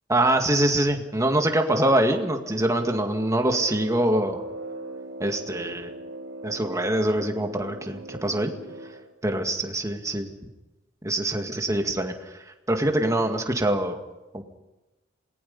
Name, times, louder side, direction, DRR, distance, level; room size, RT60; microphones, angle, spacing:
voice 1, 0.1-4.4 5.2-5.9 6.4-8.5 9.2-10.3 11.0-12.1 12.7-14.0 14.3-14.4, right 1 dB, 15° right, 4 dB, 2.1 m, -24 dB
Brass instrument, 3.5-9.1, right 2 dB, 85° right, 2.6 m, -39 dB
27.5 x 20.0 x 5.5 m, 1.1 s
head